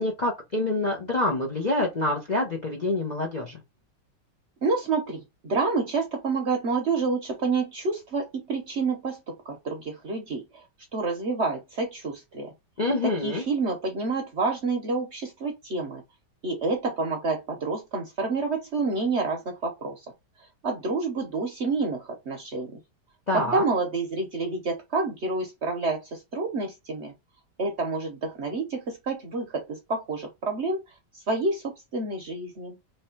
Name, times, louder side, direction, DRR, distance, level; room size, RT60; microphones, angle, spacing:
voice 1, 0.0-3.6 12.8-13.4 23.3-23.6, left 2 dB, 40° left, 0.6 m, -26 dB
voice 2, 4.6-9.2 9.4-10.6 10.9-12.5 13.0-16.0 16.4-20.0 20.6-22.7 23.3-27.1 27.6-30.8 31.3-32.8, right 3 dB, 50° right, 0.9 m, -28 dB
3.2 x 3.1 x 4.4 m
omnidirectional pair, 1.9 m